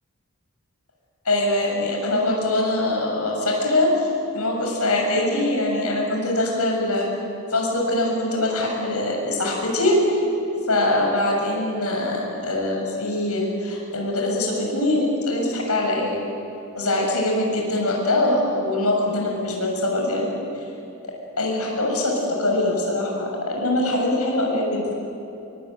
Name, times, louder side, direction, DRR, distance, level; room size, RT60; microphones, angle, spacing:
voice 1, 1.2-7.1 7.5-10.2 10.7-16.2 16.7-20.7 21.4-24.9, left 1 dB, 85° left, 0 dB, 7.2 m, -23 dB
26.0 x 24.0 x 9.1 m, 2.9 s
head